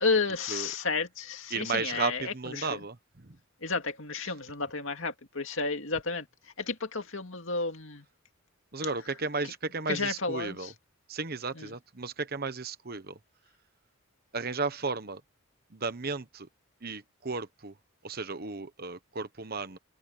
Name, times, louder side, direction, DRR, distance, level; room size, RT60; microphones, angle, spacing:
voice 1, 0.0-2.8 3.6-6.3 6.6-8.0 9.9-10.6 11.6-11.7, left 4 dB, 65° left, 2.3 m, -31 dB
voice 2, 1.5-3.4 4.2-4.3 8.7-10.7 11.1-13.2 14.3-15.2 15.7-16.5 16.8-17.7 18.0-19.8, right 4 dB, 45° right, 1.1 m, -34 dB
open air
head